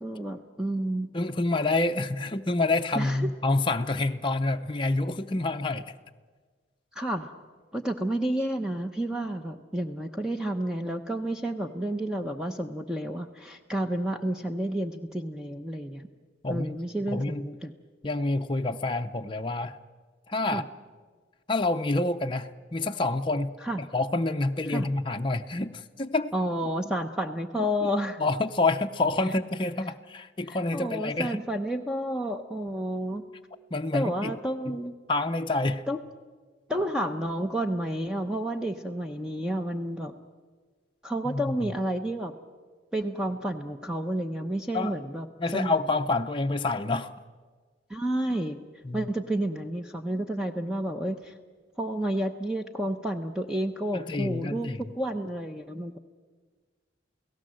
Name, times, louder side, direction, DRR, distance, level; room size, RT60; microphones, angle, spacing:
voice 1, 0.0-1.1 2.9-3.3 6.9-7.3 7.7-16.1 16.5-17.7 20.5-20.6 23.6-23.8 24.7-24.9 26.3-28.2 30.5-33.2 33.9-34.9 35.9-36.0 36.7-40.1 41.0-42.3 42.9-45.3 45.5-45.7 47.9-48.6 48.9-51.3 51.8-56.0, right 1 dB, 5° right, 5 dB, 0.8 m, -30 dB
voice 2, 1.1-5.9 16.4-16.8 17.1-17.4 18.0-19.8 20.3-20.6 21.5-26.3 27.6-27.7 28.2-31.5 33.7-34.3 34.7-34.8 35.1-35.8 41.2-41.7 44.7-44.9 45.4-47.1 48.8-49.1 53.9-54.9, left 2 dB, 25° left, 5 dB, 0.7 m, -28 dB
29.0 x 17.5 x 7.7 m, 1.5 s
head